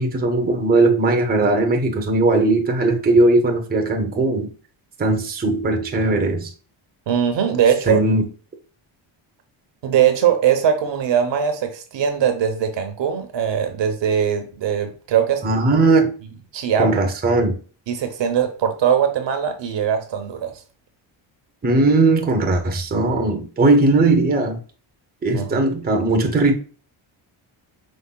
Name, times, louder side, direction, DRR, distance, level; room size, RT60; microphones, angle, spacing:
voice 1, 0.0-4.5 5.0-6.5 7.9-8.2 15.4-16.1 16.8-17.5 21.6-24.6 25.2-26.6, right 2 dB, 20° right, 0.7 m, -18 dB
voice 2, 7.1-8.0 9.8-15.4 16.5-17.1 17.9-20.6 25.3-25.7, right 8 dB, 60° right, 0.9 m, -21 dB
5.5 x 3.3 x 2.2 m
cardioid pair, 120°, 49 cm